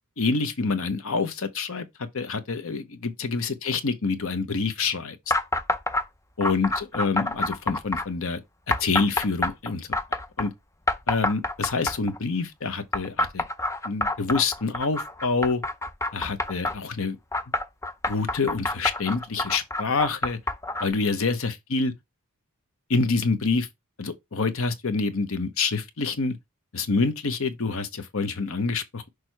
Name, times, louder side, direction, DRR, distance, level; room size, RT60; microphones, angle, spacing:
voice 1, 0.2-5.2 6.4-8.4 8.8-10.0 10.4-10.5 11.1-13.4 13.8-15.6 16.1-17.2 18.1-20.4 20.8-21.9 22.9-23.7 24.0-26.4 26.7-29.1, left 4 dB, 65° left, 0.9 m, -27 dB
sound 1, 5.3-6.0 6.4-8.1 8.7-10.5 10.9-12.2 12.9-16.8 17.3-20.9, left 2 dB, 15° left, 0.5 m, -27 dB
6.3 x 3.4 x 4.5 m
head